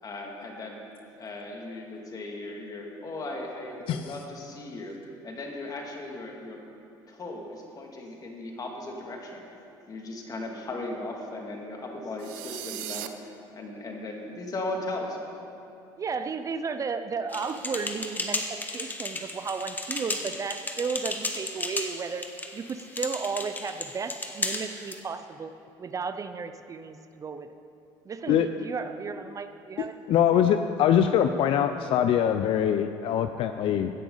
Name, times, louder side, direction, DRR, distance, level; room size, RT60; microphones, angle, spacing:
voice 1, 0.0-0.8 1.2-5.0 5.2-6.6 7.1-9.4 9.9-15.2, left 2 dB, 35° left, 0 dB, 2.3 m, -37 dB
sound 1, 12.2-13.1, right 14 dB, 90° right, 0.6 m, -37 dB
voice 2, 16.0-25.5 25.8-27.5 28.1-30.0 30.3-30.7, right 5 dB, 35° right, 9 dB, 0.6 m, -34 dB
sound 2, 17.3-25.0, left 2 dB, 15° left, 1.4 m, -34 dB
voice 3, 29.8-33.9, left 9 dB, 60° left, 8 dB, 0.5 m, -23 dB
16.5 x 9.9 x 4.0 m, 2.7 s
supercardioid pair, 85°, 10 cm